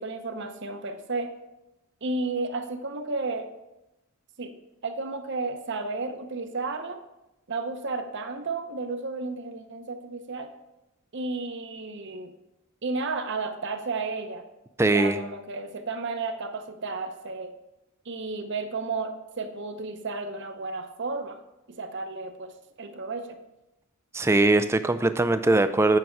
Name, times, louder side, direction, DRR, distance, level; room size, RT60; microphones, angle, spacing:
voice 1, 0.0-1.3 2.0-3.5 4.4-7.0 7.5-10.5 11.1-12.3 12.8-14.4 14.9-17.5 18.1-21.4 21.7-22.5 22.8-23.4, right 3 dB, 50° right, 7 dB, 0.7 m, -32 dB
voice 2, 14.8-15.2 24.1-26.0, right 2 dB, 10° right, 11 dB, 0.3 m, -21 dB
8.7 x 6.1 x 4.6 m, 0.96 s
head